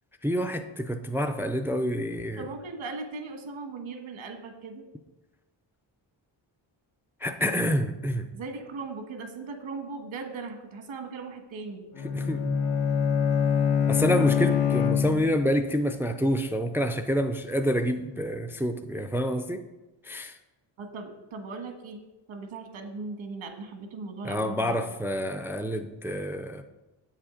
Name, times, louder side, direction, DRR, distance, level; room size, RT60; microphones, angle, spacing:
voice 1, 0.2-2.5 7.2-8.2 12.1-12.5 13.9-19.6 20.1-20.3 24.2-26.6, equal, 5° right, 6 dB, 0.3 m, -28 dB
voice 2, 2.4-4.8 8.3-11.8 20.8-22.0 22.3-24.8, right 4 dB, 90° right, 5 dB, 1.5 m, -38 dB
Bowed string instrument, 11.9-15.6, left 7 dB, 90° left, 1.3 m, -25 dB
7.7 x 7.4 x 5.0 m, 1.1 s
wide cardioid pair, 140°, 47 cm